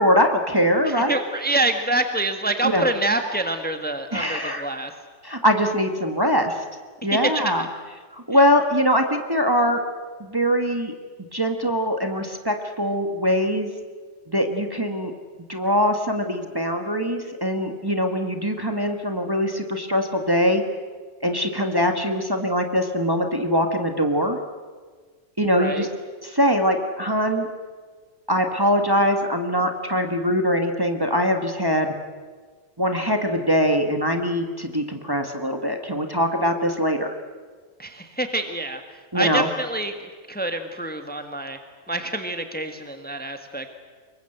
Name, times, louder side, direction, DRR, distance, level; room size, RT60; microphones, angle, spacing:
voice 1, 0.0-1.2 2.6-2.8 4.1-4.7 5.2-6.6 7.0-7.6 8.1-9.8 10.2-10.9 11.3-13.7 14.3-15.1 15.5-20.6 21.2-24.4 25.4-25.9 26.2-27.5 28.3-31.9 32.8-37.2 39.1-39.5, equal, 20° right, 4 dB, 1.7 m, -22 dB
voice 2, 0.8-4.9 7.1-7.7 8.3-8.4 25.6-25.9 37.8-38.8 39.1-39.9 40.3-41.6 41.9-43.7, right 2 dB, 10° left, 6 dB, 1.6 m, -26 dB
25.5 x 22.5 x 8.0 m, 1.5 s
omnidirectional pair, 1.2 m